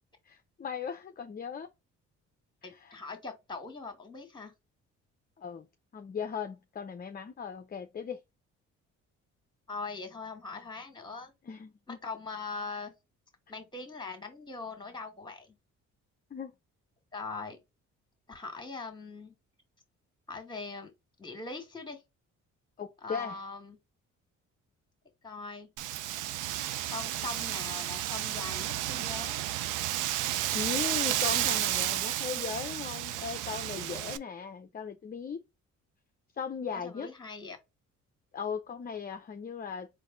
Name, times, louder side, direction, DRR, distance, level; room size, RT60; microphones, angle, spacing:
voice 1, 0.3-1.7 2.6-3.0 5.4-5.7 5.9-8.2 11.4-12.0 16.3-16.5 22.8-23.4 30.5-35.4 36.4-37.1 38.3-39.9, left 6 dB, 30° left, 0.6 m, -38 dB
voice 2, 2.6-4.5 9.7-11.3 11.9-12.9 13.5-15.6 17.1-17.6 18.3-19.3 20.3-20.9 21.2-22.0 23.0-23.8 25.2-25.7 26.9-29.4 36.7-37.6, left 3 dB, 15° left, 1.7 m, -41 dB
Wind, 25.8-34.2, right 13 dB, 90° right, 0.5 m, -32 dB
4.1 x 2.6 x 3.8 m
cardioid pair, 90°, 30 cm